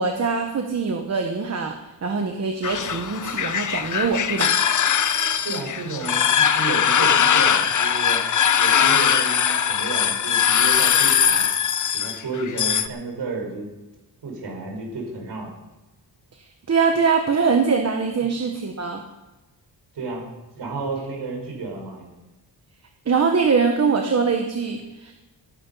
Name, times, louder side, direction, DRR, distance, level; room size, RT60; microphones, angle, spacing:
voice 1, 0.0-1.7 2.0-4.5 16.7-19.0 23.1-25.1, right 5 dB, 35° right, 4 dB, 1.1 m, -22 dB
sound 1, 2.6-12.9, left 8 dB, 45° left, 0.6 m, -20 dB
voice 2, 5.4-8.2 8.6-11.5 11.9-13.7 14.2-15.5 19.9-20.2 20.6-22.1, right 3 dB, 65° right, 0 dB, 5.2 m, -32 dB
17.0 x 10.5 x 5.5 m, 1.1 s
wide cardioid pair, 175°, 44 cm